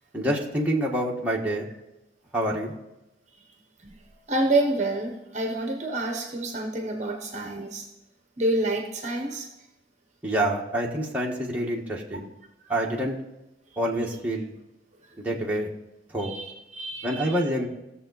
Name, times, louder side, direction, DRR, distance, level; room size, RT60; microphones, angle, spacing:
voice 1, 0.1-1.7 2.3-2.7 10.2-12.3 12.7-13.2 13.8-14.5 15.2-15.7 16.1-16.3 17.0-17.7, right 1 dB, 10° right, -3 dB, 1.3 m, -27 dB
voice 2, 4.3-7.9 8.4-9.5 16.2-17.4, right 2 dB, 40° right, 4 dB, 0.9 m, -28 dB
17.5 x 7.0 x 4.0 m, 0.95 s
head